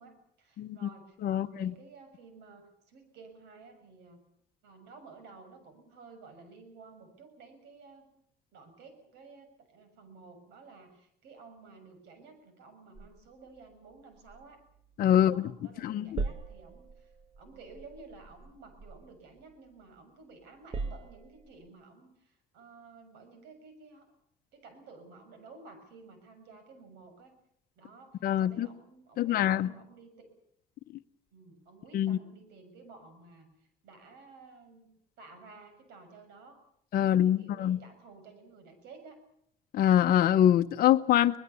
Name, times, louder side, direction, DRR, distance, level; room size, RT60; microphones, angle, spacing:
voice 1, 0.0-4.2 4.6-8.1 8.5-14.6 15.1-24.1 24.5-27.3 27.8-30.3 31.3-36.6 37.0-39.2, right 4 dB, 85° right, 8 dB, 6.6 m, -53 dB
voice 2, 0.6-0.9 1.2-1.7 15.0-15.5 15.8-16.2 28.2-28.7 29.2-29.7 31.9-32.2 36.9-37.8 39.7-41.4, left 11 dB, 60° left, 5 dB, 0.9 m, -24 dB
sound 1, 12.9-15.5 15.8-20.0 20.4-21.7, right 4 dB, 35° right, 1.3 m, -42 dB
24.0 x 20.5 x 7.0 m, 0.71 s
cardioid pair, 110°, 17 cm